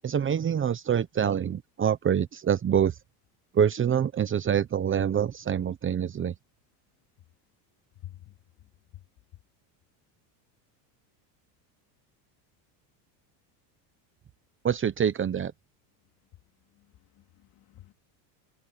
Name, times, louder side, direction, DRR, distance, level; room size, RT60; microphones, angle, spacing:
voice 1, 0.0-2.9 3.5-6.3 14.6-15.5, right 8 dB, 25° right, 1.0 m, -25 dB
voice 2, 8.0-8.3 16.7-16.9 17.2-17.9, left 13 dB, 45° left, 3.0 m, -48 dB
supercardioid pair, 125°, 49 cm